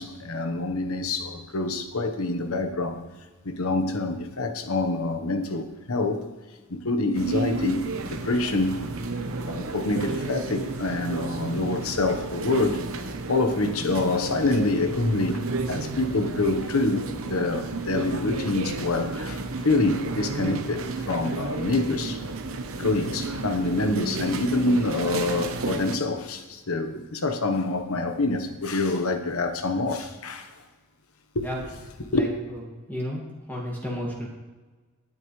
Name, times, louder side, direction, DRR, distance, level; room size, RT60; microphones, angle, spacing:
voice 1, 0.0-3.0 3.4-6.2 6.7-8.8 9.4-12.8 13.3-22.2 22.8-30.5 31.3-31.7 32.0-32.3, left 2 dB, 75° left, 1.2 m, -26 dB
sound 1, 7.1-26.0, right 3 dB, 65° right, 1.0 m, -32 dB
voice 2, 32.1-32.6 32.9-33.2 33.5-34.3, equal, 10° left, 2.1 m, -32 dB
18.5 x 8.6 x 3.2 m
head